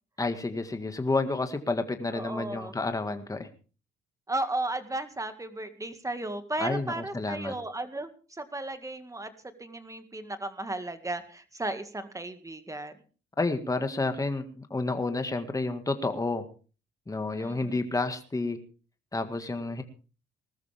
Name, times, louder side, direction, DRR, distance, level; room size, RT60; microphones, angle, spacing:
voice 1, 0.2-3.5 6.6-7.6 13.4-16.5 17.1-18.6 19.1-19.8, left 3 dB, 15° left, 7 dB, 1.8 m, -30 dB
voice 2, 2.1-2.7 4.3-9.3 9.6-12.9 17.3-17.8, right 2 dB, 15° right, 9 dB, 2.0 m, -35 dB
20.0 x 13.5 x 3.5 m, 0.36 s
cardioid pair, 90°, 20 cm